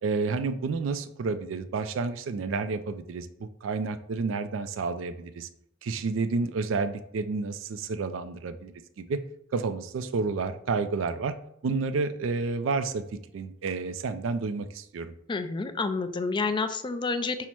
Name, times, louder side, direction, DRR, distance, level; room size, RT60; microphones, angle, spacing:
voice 1, 0.0-5.5 5.8-9.2 9.5-11.3 11.6-13.0 13.3-15.1, right 4 dB, 70° right, 10 dB, 0.4 m, -30 dB
voice 2, 15.3-17.4, left 4 dB, 25° left, 9 dB, 0.3 m, -29 dB
5.6 x 2.1 x 4.5 m, 0.75 s
head